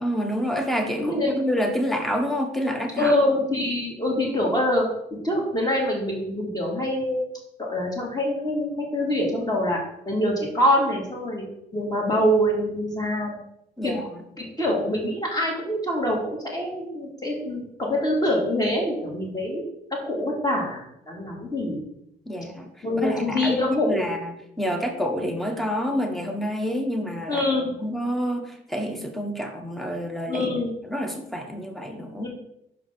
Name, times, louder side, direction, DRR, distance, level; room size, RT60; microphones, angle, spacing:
voice 1, 0.0-3.2 13.8-14.2 22.2-22.7 23.0-30.4 30.9-32.3, equal, ahead, 4 dB, 1.2 m, -28 dB
voice 2, 1.0-1.3 3.0-4.8 5.2-7.3 7.6-9.8 10.1-11.5 11.7-13.4 13.8-13.9 14.4-19.6 19.9-21.8 22.3-22.4 22.8-24.0 27.3-27.7 30.3-30.7 32.2-32.3, left 1 dB, 20° left, -2 dB, 2.7 m, -25 dB
6.0 x 4.8 x 5.4 m, 0.79 s
cardioid pair, 90°, 20 cm